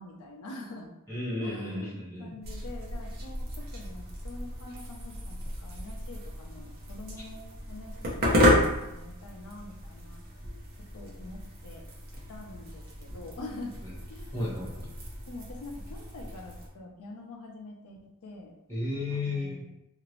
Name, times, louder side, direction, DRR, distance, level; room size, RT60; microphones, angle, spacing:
voice 1, 0.0-0.9 1.4-10.2 10.8-11.9 12.3-13.8 14.1-14.3 15.3-18.5 19.1-19.7, left 2 dB, 80° left, 0 dB, 0.5 m, -45 dB
voice 2, 1.1-2.3 7.2-7.3 14.3-14.9 18.7-19.6, left 2 dB, 10° left, -9 dB, 1.2 m, -33 dB
sound 1, 2.4-16.7, left 1 dB, 45° right, 0.7 m, -32 dB
2.9 x 2.5 x 3.0 m, 0.90 s
head